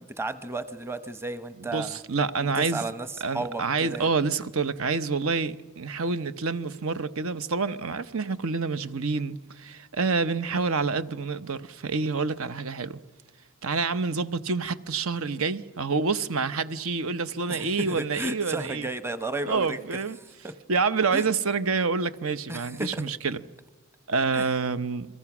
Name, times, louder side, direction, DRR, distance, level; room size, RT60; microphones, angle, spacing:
voice 1, 0.0-2.0 2.4-4.1 17.5-19.8 20.4-20.5 21.1-21.2 22.5-23.0 24.3-24.5, right 2 dB, 10° right, 0.8 m, -33 dB
voice 2, 1.6-2.8 3.2-13.0 13.6-18.9 19.5-20.2 20.7-23.4 24.1-25.1, right 4 dB, 75° right, 0.9 m, -27 dB
29.5 x 22.5 x 6.1 m
head